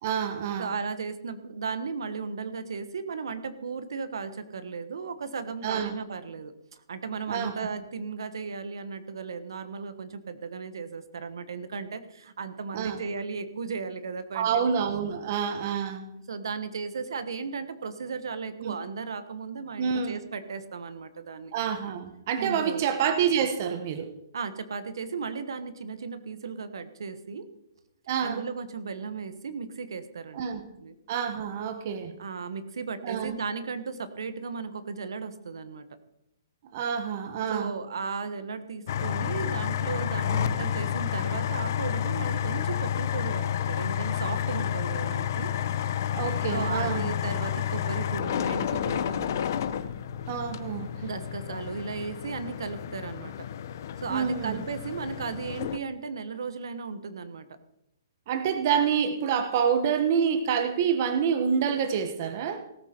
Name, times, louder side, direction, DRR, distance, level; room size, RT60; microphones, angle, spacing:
voice 1, 0.0-0.7 5.6-5.9 7.3-7.7 12.7-13.0 14.3-16.1 18.6-18.7 19.8-20.2 21.5-24.1 28.1-28.4 30.3-30.6 31.1-32.1 33.0-33.3 36.7-37.7 40.3-40.5 46.1-47.1 50.3-51.0 54.1-54.6 58.3-62.6, right 7 dB, 35° right, 9 dB, 1.0 m, -27 dB
voice 2, 0.6-14.7 16.3-21.5 22.4-22.8 24.3-27.5 28.2-30.9 32.2-35.9 37.5-45.5 46.5-49.5 51.0-53.3 54.0-57.5, right 5 dB, 75° right, 12 dB, 1.2 m, -35 dB
sound 1, 38.9-55.8, left 10 dB, 45° left, 0.7 m, -30 dB
18.0 x 8.4 x 4.4 m, 0.84 s
hypercardioid pair, 170°, 2 cm